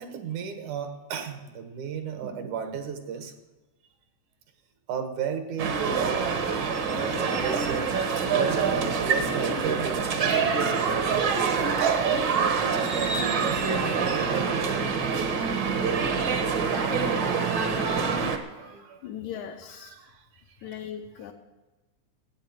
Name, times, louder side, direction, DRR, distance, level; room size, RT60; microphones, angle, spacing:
voice 1, 0.0-3.3 4.9-12.0 12.6-14.9 16.1-19.0 19.7-20.2 20.6-20.8, right 7 dB, 75° right, 8 dB, 2.7 m, -36 dB
sound 1, 5.6-18.4, right 5 dB, 55° right, 1.4 m, -25 dB
voice 2, 19.0-20.0 20.6-21.3, left 9 dB, 80° left, 1 dB, 2.3 m, -38 dB
13.0 x 8.7 x 9.0 m, 1.1 s
omnidirectional pair, 3.5 m